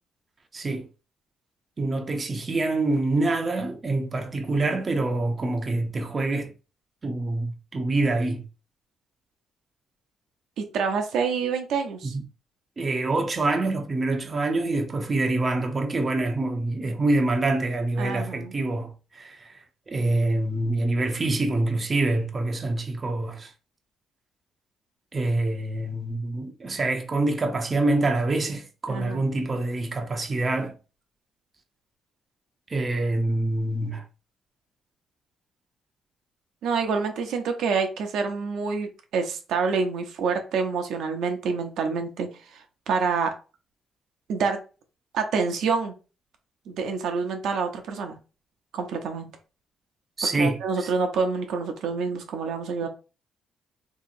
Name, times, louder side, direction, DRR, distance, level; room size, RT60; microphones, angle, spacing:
voice 1, 0.5-0.9 1.8-6.5 7.0-8.4 12.1-12.2 12.8-19.6 19.9-23.5 25.1-30.7 32.7-34.0 50.2-50.9, right 2 dB, 30° right, 0.5 m, -26 dB
voice 2, 10.6-12.1 18.0-18.5 28.9-29.2 36.6-43.3 44.3-44.6 45.1-45.9 46.7-48.2 48.7-49.3 50.4-52.9, right 5 dB, 80° right, 0.6 m, -27 dB
2.9 x 2.8 x 2.5 m
cardioid pair, 90°, 0 cm